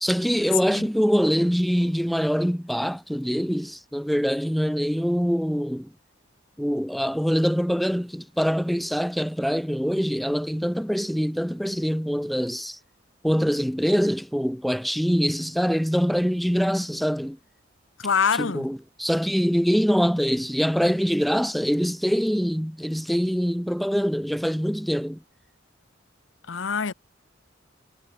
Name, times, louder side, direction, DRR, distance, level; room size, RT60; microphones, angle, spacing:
voice 1, 0.0-5.9 6.6-12.8 13.2-17.4 18.4-25.2, equal, ahead, 1.8 m, -24 dB
voice 2, 18.0-18.7 26.5-26.9, left 6 dB, 80° left, 0.8 m, -24 dB
head